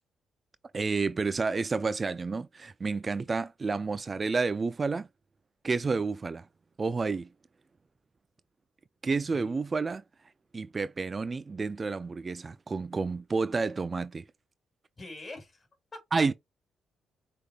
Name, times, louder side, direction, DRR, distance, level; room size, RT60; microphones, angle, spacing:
voice 1, 0.7-5.1 5.6-6.5 6.8-7.3 9.0-10.0 10.5-14.2 16.1-16.3, right 4 dB, 40° right, 0.3 m, -30 dB
voice 2, 9.0-9.5 15.0-16.0, left 2 dB, 40° left, 2.3 m, -45 dB
6.3 x 3.5 x 2.3 m
hypercardioid pair, 45°, 0 cm